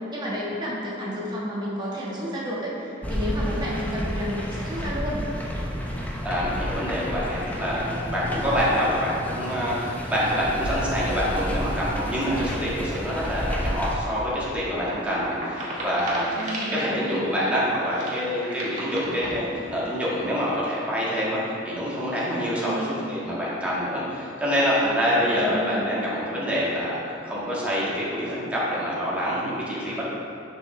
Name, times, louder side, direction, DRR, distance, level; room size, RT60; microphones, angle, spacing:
voice 1, 0.1-5.2 16.3-17.3 22.6-22.9 25.3-25.9, equal, 25° right, -6 dB, 1.3 m, -31 dB
sound 1, 3.0-13.9, equal, 10° left, 0.7 m, -31 dB
voice 2, 6.2-16.4 16.7-27.0 27.2-30.0, equal, 10° right, -8 dB, 1.7 m, -26 dB
sound 2, 14.2-16.9 17.3-17.4 17.9-19.8 20.2-20.8, right 1 dB, 40° right, 1.6 m, -35 dB
9.9 x 5.6 x 3.3 m, 2.6 s
head